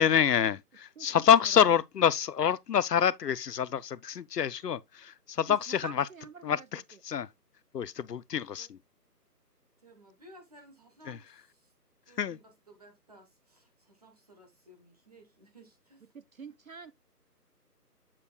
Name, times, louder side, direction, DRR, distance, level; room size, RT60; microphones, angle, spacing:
voice 1, 0.0-6.0 6.4-7.3 7.7-8.8 11.1-11.2 12.2-12.4, left 8 dB, 75° left, 0.5 m, -26 dB
voice 2, 1.0-1.6 5.5-6.7 6.9-7.0 16.1-16.9, right 5 dB, 60° right, 0.5 m, -47 dB
voice 3, 9.8-11.7 12.1-16.1, right 1 dB, 25° right, 1.2 m, -57 dB
7.3 x 6.7 x 2.2 m
figure-of-eight pair, 155°, 48 cm